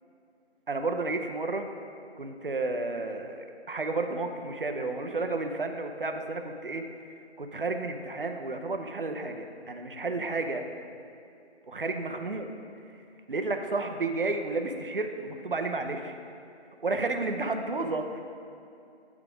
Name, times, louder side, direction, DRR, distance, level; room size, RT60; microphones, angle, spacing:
voice 1, 0.7-1.7 2.2-6.8 7.4-10.6 11.7-12.5 13.3-16.2 16.8-18.2, right 3 dB, 50° right, 5 dB, 0.7 m, -31 dB
9.1 x 4.7 x 4.9 m, 2.5 s
figure-of-eight pair, 180°, 34 cm